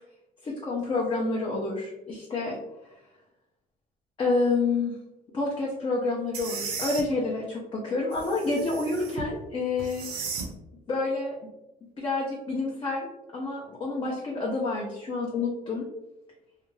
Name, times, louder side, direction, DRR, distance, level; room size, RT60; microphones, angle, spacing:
voice 1, 0.4-2.6 4.2-4.9 5.3-10.2 10.9-11.4 12.0-15.9, left 3 dB, 30° left, -3 dB, 0.5 m, -28 dB
sound 1, 6.3-7.0 8.1-9.3 9.8-10.5, right 5 dB, 65° right, 0.6 m, -35 dB
2.4 x 2.2 x 3.1 m, 0.94 s
cardioid pair, 110°, 17 cm